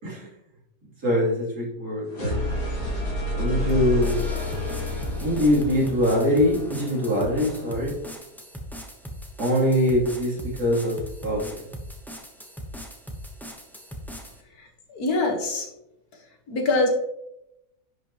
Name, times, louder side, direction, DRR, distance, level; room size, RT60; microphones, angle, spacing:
voice 1, 1.0-2.4 3.3-4.2 5.2-7.9 9.4-11.6, equal, 75° right, -6 dB, 3.6 m, -23 dB
sound 1, 2.1-7.9, left 1 dB, 85° left, 3.8 m, -30 dB
sound 2, 3.7-14.4, equal, ahead, 0.6 m, -39 dB
voice 2, 14.9-15.7 16.5-16.9, left 2 dB, 70° left, 2 dB, 1.9 m, -23 dB
10.5 x 5.4 x 3.0 m, 0.86 s
omnidirectional pair, 1.7 m